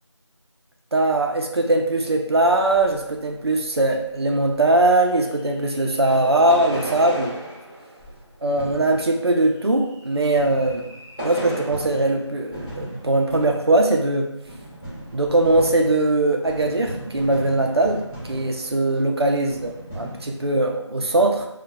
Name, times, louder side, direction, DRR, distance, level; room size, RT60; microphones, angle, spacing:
voice 1, 0.9-7.4 8.4-10.9 11.2-14.3 15.1-18.0 18.3-21.5, right 2 dB, 55° right, 2 dB, 0.4 m, -20 dB
sound 1, 2.3-3.8 4.1-4.2 4.4-4.7 5.4-19.1 19.4-20.5, right 1 dB, 15° left, 1.4 m, -36 dB
2.7 x 2.1 x 2.2 m, 0.85 s
figure-of-eight pair, 175°, 16 cm